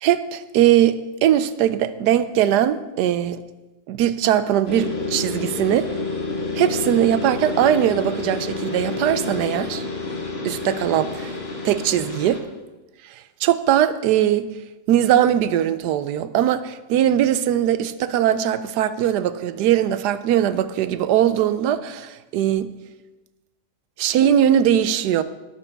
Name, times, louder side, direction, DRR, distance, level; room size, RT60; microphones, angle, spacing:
voice 1, 0.0-3.4 3.9-5.9 6.5-9.9 10.4-11.3 11.6-12.4 13.0-13.1 13.4-14.4 14.9-22.7 24.0-25.2, right 11 dB, 70° right, 13 dB, 1.1 m, -20 dB
sound 1, 4.7-12.4, left 3 dB, 35° left, 1.8 m, -29 dB
12.0 x 12.0 x 3.5 m, 1.1 s
omnidirectional pair, 1.9 m